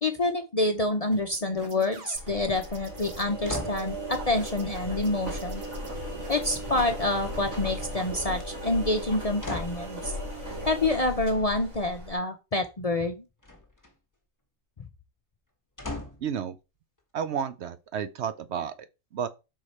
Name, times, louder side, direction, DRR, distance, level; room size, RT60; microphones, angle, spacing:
voice 1, 0.0-5.6 6.3-10.1 10.7-13.2, left 2 dB, 40° left, 0.6 m, -27 dB
sound 1, 1.1-8.4, right 3 dB, 50° right, 1.4 m, -46 dB
Engine, 2.1-12.1, equal, 85° right, 3.5 m, -36 dB
sound 2, 3.4-3.9 6.4-7.1 8.1-8.5 9.4-9.9 13.4-13.9 15.8-16.3 17.0-17.1, left 2 dB, 15° left, 1.3 m, -38 dB
voice 2, 16.2-16.6 17.1-18.8 19.1-19.3, right 8 dB, 65° right, 0.8 m, -31 dB
5.8 x 4.8 x 4.2 m
omnidirectional pair, 1.4 m